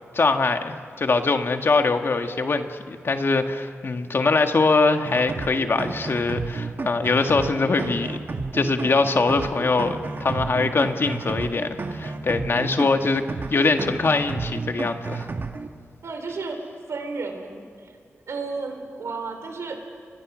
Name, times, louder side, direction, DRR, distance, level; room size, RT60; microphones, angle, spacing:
voice 1, 0.1-8.2 8.5-13.2 13.5-15.3, left 3 dB, 55° left, 6 dB, 1.7 m, -22 dB
sound 1, 5.0-15.7, right 3 dB, 50° right, 1.6 m, -32 dB
voice 2, 16.0-16.6 16.9-17.9 18.3-19.8, right 4 dB, 80° right, 5 dB, 3.9 m, -32 dB
29.5 x 23.0 x 6.3 m, 2.1 s
cardioid pair, 70°, 5 cm